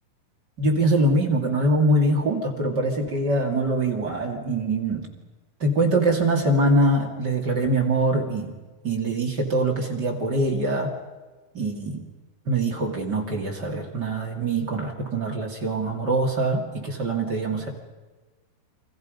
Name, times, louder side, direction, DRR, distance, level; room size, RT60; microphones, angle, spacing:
voice 1, 0.6-5.1 5.6-8.5 8.8-10.9 11.5-12.1 12.5-17.7, right 1 dB, 30° right, 1 dB, 2.3 m, -23 dB
30.0 x 25.5 x 5.3 m, 1.3 s
omnidirectional pair, 5.4 m